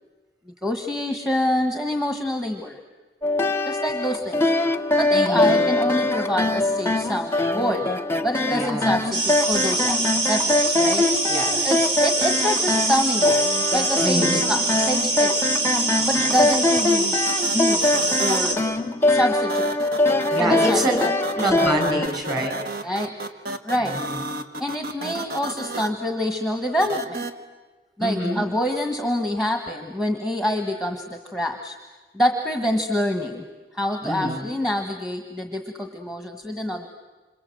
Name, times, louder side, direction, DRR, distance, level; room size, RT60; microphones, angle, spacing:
voice 1, 0.6-2.8 3.6-4.4 5.0-7.9 8.2-10.0 10.3-11.1 11.6-13.5 13.7-15.5 16.1-17.2 17.5-18.6 19.1-19.7 20.4-21.1 22.8-23.1 23.6-24.0 24.6-27.3 28.0-31.8 32.1-33.4 33.7-36.9, equal, 5° right, 4 dB, 1.5 m, -26 dB
sound 1, 3.2-22.1, left 2 dB, 15° left, 0.9 m, -23 dB
voice 2, 5.1-5.6 8.5-9.0 11.3-11.7 14.0-14.4 16.1-16.3 20.3-21.0 21.3-22.5 23.8-24.2 28.0-28.4 34.0-34.5, equal, 25° right, 4 dB, 6.3 m, -26 dB
sound 2, 9.1-18.6, right 2 dB, 85° right, 3.4 m, -24 dB
sound 3, 16.3-16.4 17.3-18.4 19.5-25.9 26.8-27.3, right 3 dB, 60° right, 1.5 m, -31 dB
27.5 x 27.0 x 7.8 m, 1.3 s
head